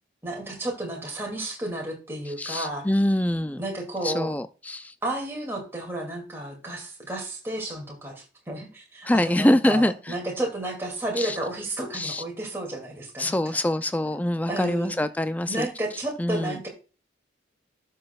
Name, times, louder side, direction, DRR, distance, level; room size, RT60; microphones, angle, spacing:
voice 1, 0.2-2.9 3.6-4.3 5.0-13.4 14.5-15.0 15.5-16.7, right 1 dB, 15° right, 2.4 m, -32 dB
voice 2, 2.3-3.6 4.0-4.9 9.0-10.2 11.2-11.4 11.9-12.2 13.2-15.7 16.2-16.6, left 1 dB, 10° left, 0.3 m, -24 dB
12.5 x 6.3 x 2.3 m
head